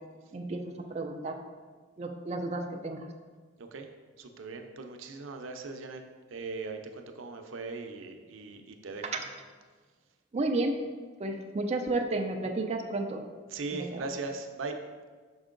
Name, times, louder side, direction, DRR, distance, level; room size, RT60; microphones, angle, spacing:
voice 1, 0.9-1.4 2.0-3.1 9.0-9.2 10.3-10.8 11.2-13.2 13.7-14.1, right 2 dB, 35° right, 3 dB, 0.4 m, -32 dB
voice 2, 3.6-3.9 4.2-6.0 6.3-9.1 13.5-14.8, right 3 dB, 90° right, 5 dB, 0.6 m, -39 dB
6.1 x 4.4 x 3.7 m, 1.5 s
head